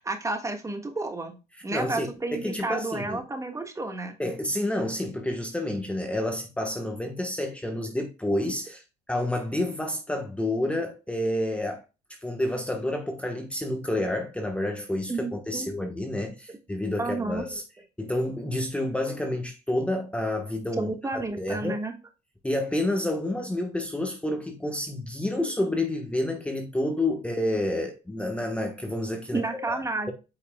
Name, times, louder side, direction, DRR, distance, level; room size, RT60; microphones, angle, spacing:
voice 1, 0.0-1.4 1.6-4.1 15.1-15.7 16.5-16.6 17.0-17.5 20.8-21.9 29.3-30.1, right 3 dB, 20° right, 1.5 m, -31 dB
voice 2, 1.7-3.2 4.2-11.8 12.1-17.6 18.0-21.8 22.4-29.8, left 1 dB, 5° left, 1.1 m, -29 dB
8.5 x 5.6 x 2.2 m
cardioid pair, 110°, 17 cm